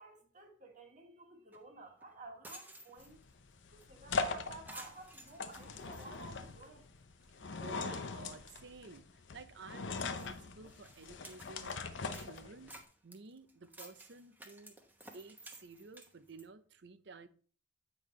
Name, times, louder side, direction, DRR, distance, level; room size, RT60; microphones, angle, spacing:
voice 1, 0.0-3.2 3.7-6.9, right 2 dB, 45° right, 1.6 m, -53 dB
sound 1, 1.5-1.6 2.0-2.1 2.3-3.3 3.8-3.9 4.2-4.3 4.7-6.8 7.2-7.3 7.9-8.0 8.2-8.5 8.9-9.0 9.6-9.7 10.1-11.8 12.1-16.5, right 1 dB, 10° right, 1.0 m, -55 dB
sound 2, 3.0-12.8, left 4 dB, 75° left, 0.7 m, -41 dB
voice 2, 7.3-11.8 12.2-12.7 13.0-14.8 15.1-17.3, right 4 dB, 60° right, 0.6 m, -53 dB
8.4 x 5.4 x 3.2 m
head